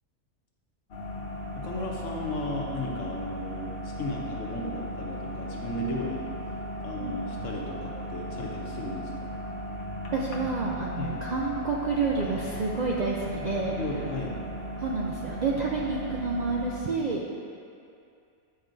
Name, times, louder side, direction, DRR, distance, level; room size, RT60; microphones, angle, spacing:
sound 1, 0.9-16.8, equal, 60° left, 1.0 m, -36 dB
voice 1, 1.6-6.2 6.8-9.1 11.0-11.2 13.4-14.4, left 1 dB, 85° left, -2 dB, 1.2 m, -35 dB
voice 2, 10.1-13.7 14.8-17.2, right 4 dB, 65° right, -3 dB, 0.4 m, -29 dB
8.8 x 4.8 x 2.6 m, 2.4 s
omnidirectional pair, 1.3 m